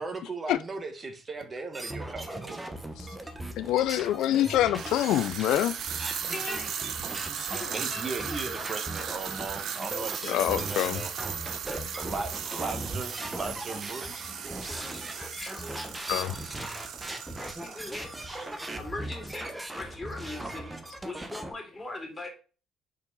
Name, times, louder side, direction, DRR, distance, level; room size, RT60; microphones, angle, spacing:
voice 1, 0.0-2.7 7.7-11.1 11.6-14.3 16.0-16.8 18.6-18.7, right 3 dB, 35° right, 1.2 m, -38 dB
sound 1, 1.4-1.5 2.5-2.6 4.6-18.7, right 8 dB, 65° right, 0.8 m, -37 dB
sound 2, 1.7-21.5, right 1 dB, 15° right, 1.1 m, -39 dB
voice 2, 3.6-5.8 10.2-11.0 16.1-16.3, left 12 dB, 75° left, 0.3 m, -25 dB
voice 3, 6.3-6.7 7.4-7.9 11.6-11.8 14.7-16.0 17.4-18.3 18.8-19.5 19.7-20.7 21.0-22.3, left 2 dB, 20° left, 2.4 m, -40 dB
5.4 x 4.5 x 4.0 m
supercardioid pair, 75°, 0 cm